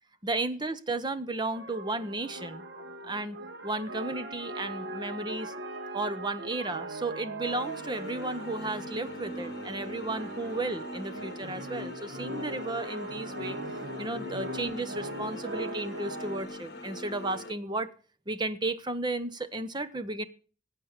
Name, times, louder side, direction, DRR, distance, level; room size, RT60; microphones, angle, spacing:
voice 1, 0.2-2.6 3.0-3.4 3.6-5.5 5.9-13.6 14.0-17.9 18.3-20.2, right 2 dB, 25° right, 12 dB, 0.9 m, -34 dB
sound 1, 1.5-16.4, right 1 dB, 65° right, 1.6 m, -40 dB
sound 2, 7.4-17.5, left 1 dB, 60° left, 1.8 m, -42 dB
18.0 x 8.5 x 6.6 m, 0.41 s
head